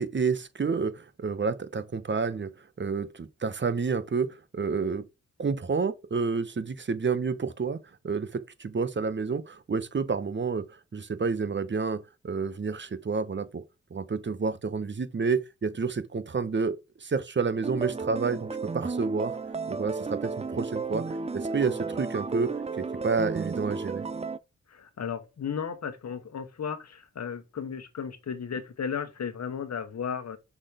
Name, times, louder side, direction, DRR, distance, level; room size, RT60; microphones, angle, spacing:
voice 1, 0.0-2.5 2.8-5.0 5.4-7.8 8.0-13.6 13.9-19.4 19.7-21.0 21.3-22.5 22.8-24.0, right 5 dB, 40° right, 1.0 m, -29 dB
sound 1, 17.6-24.4, right 4 dB, 20° right, 0.5 m, -33 dB
voice 2, 24.7-30.4, left 7 dB, 65° left, 1.3 m, -34 dB
6.0 x 4.1 x 5.0 m
cardioid pair, 50°, 30 cm